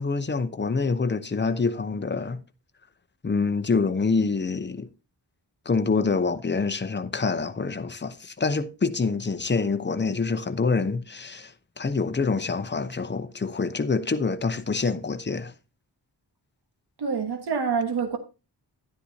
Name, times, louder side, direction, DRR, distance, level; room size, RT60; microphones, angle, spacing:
voice 1, 0.0-2.4 3.2-4.9 5.7-15.5, left 4 dB, 25° left, 0.8 m, -26 dB
voice 2, 17.0-18.2, right 6 dB, 65° right, 1.6 m, -26 dB
11.0 x 10.0 x 2.8 m
wide cardioid pair, 155°, 42 cm